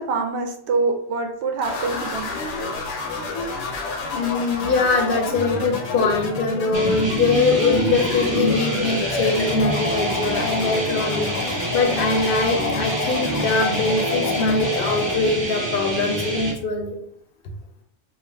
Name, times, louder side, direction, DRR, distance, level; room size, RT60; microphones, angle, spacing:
voice 1, 0.0-2.3, right 4 dB, 70° right, 3 dB, 0.9 m, -25 dB
sound 1, 1.6-15.2, left 3 dB, 85° left, 0.9 m, -29 dB
voice 2, 4.1-17.0, left 3 dB, 60° left, 2 dB, 0.7 m, -23 dB
sound 2, 6.7-16.5, right 1 dB, 30° right, 0.6 m, -26 dB
2.5 x 2.3 x 3.3 m, 0.66 s
omnidirectional pair, 1.2 m